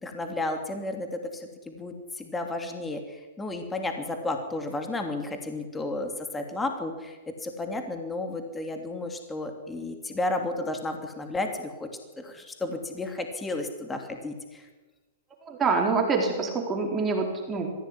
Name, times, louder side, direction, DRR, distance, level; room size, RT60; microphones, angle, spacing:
voice 1, 0.0-11.9 12.2-14.7, left 2 dB, 10° left, 5 dB, 3.0 m, -33 dB
voice 2, 15.4-17.9, right 4 dB, 20° right, 1 dB, 4.3 m, -26 dB
23.5 x 16.0 x 10.0 m, 1.2 s
hypercardioid pair, 140°, 0 cm